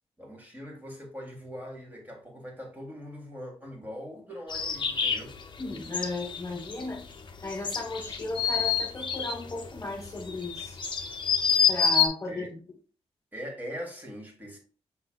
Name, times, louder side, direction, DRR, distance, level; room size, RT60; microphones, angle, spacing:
voice 1, 0.2-5.3 12.3-12.5 13.3-14.6, equal, 15° right, 1.6 m, -41 dB
sound 1, 4.5-12.1, left 6 dB, 45° left, 0.7 m, -28 dB
voice 2, 5.6-7.0 7.4-10.8 11.7-12.6, left 2 dB, 25° left, 1.1 m, -35 dB
5.9 x 3.8 x 2.2 m
cardioid pair, 90°, 11 cm